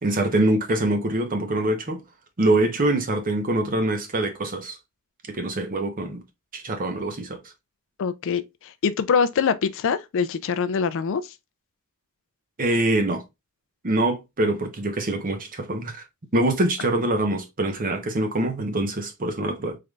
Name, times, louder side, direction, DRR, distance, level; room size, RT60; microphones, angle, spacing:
voice 1, 0.0-2.0 2.4-4.8 5.3-6.2 6.5-7.4 12.6-13.2 13.8-16.0 16.3-19.8, right 1 dB, 40° right, 0.9 m, -24 dB
voice 2, 8.0-11.2, left 6 dB, 60° left, 0.4 m, -24 dB
3.8 x 3.3 x 2.3 m
head